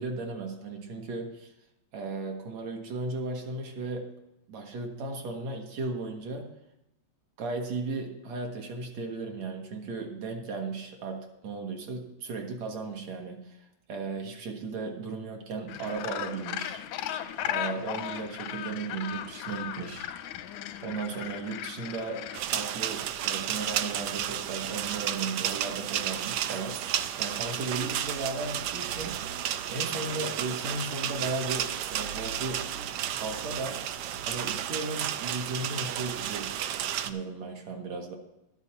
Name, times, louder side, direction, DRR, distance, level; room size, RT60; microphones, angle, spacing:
voice 1, 0.0-1.5 1.9-4.1 4.5-6.5 7.4-16.8 17.4-20.1 20.8-22.2 22.5-32.7 33.1-33.8 34.3-36.5 36.9-38.2, right 3 dB, 65° right, 2 dB, 2.7 m, -36 dB
Gull seagull, 15.7-22.4, left 11 dB, 90° left, 2.1 m, -36 dB
sound 1, 22.3-37.1, right 10 dB, 80° right, 1.3 m, -32 dB
12.5 x 8.2 x 5.8 m, 0.89 s
omnidirectional pair, 3.3 m